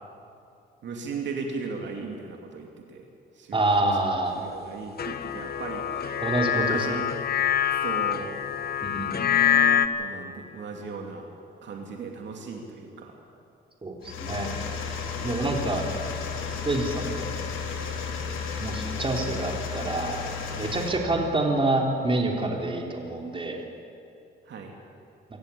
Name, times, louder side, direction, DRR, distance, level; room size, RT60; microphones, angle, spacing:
voice 1, 0.8-3.1 3.4-3.9 4.3-6.2 6.5-7.0 7.7-8.4 10.0-11.3 11.6-13.1 14.4-14.7 15.4-15.7 21.2-21.3 24.5-24.7, right 4 dB, 65° right, 2 dB, 2.6 m, -37 dB
voice 2, 3.5-4.4 6.2-6.9 8.8-9.3 13.8-14.5 15.2-15.9 16.7-17.3 18.6-23.6, right 2 dB, 25° right, 1 dB, 3.6 m, -27 dB
sound 1, 5.0-9.9, left 9 dB, 50° left, 1.2 m, -25 dB
sound 2, 14.0-20.9, left 6 dB, 90° left, 3.1 m, -33 dB
24.5 x 14.5 x 8.5 m, 2.5 s
cardioid pair, 90°, 20 cm